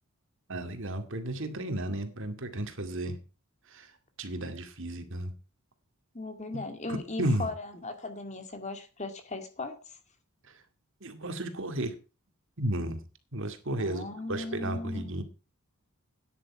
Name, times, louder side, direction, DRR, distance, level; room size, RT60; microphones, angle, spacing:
voice 1, 0.5-3.2 3.7-3.9 4.2-5.3 6.9-7.5 11.0-11.9 12.6-13.0 13.3-15.2, right 1 dB, 60° right, 2.2 m, -33 dB
voice 2, 6.1-10.0 13.8-15.1, left 2 dB, 30° left, 2.1 m, -38 dB
12.5 x 10.0 x 4.6 m
head